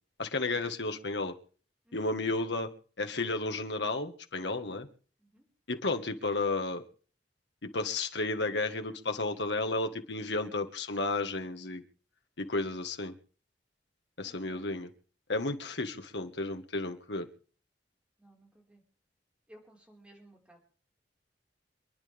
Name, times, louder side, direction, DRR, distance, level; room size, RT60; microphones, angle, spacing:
voice 1, 0.2-1.3 1.9-2.7 3.0-4.9 5.7-6.8 7.6-11.8 12.4-13.1 14.2-14.9 15.3-17.3, left 2 dB, 80° left, 6 dB, 1.7 m, -32 dB
voice 2, 14.2-14.7 18.2-18.8 19.5-20.6, right 1 dB, 5° right, 0 dB, 4.8 m, -58 dB
27.0 x 11.0 x 3.5 m, 0.42 s
head